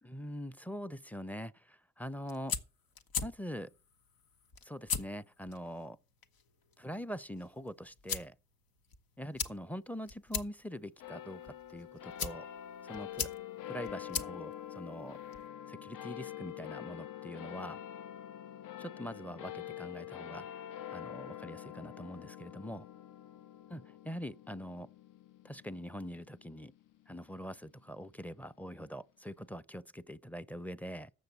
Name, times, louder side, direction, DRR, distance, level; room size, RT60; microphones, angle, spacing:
voice 1, 0.0-2.6 3.2-3.7 4.6-6.0 6.8-8.4 9.2-12.5 12.8-13.3 13.6-15.2 15.7-17.8 18.8-20.5 20.9-22.9 23.7-24.9 25.4-26.7 27.1-31.1, equal, 5° left, 0.6 m, -43 dB
sound 1, 2.1-15.5, left 6 dB, 90° left, 1.1 m, -42 dB
sound 2, 11.0-27.7, left 11 dB, 65° left, 0.5 m, -46 dB
7.0 x 6.9 x 8.0 m
cardioid pair, 60°, 34 cm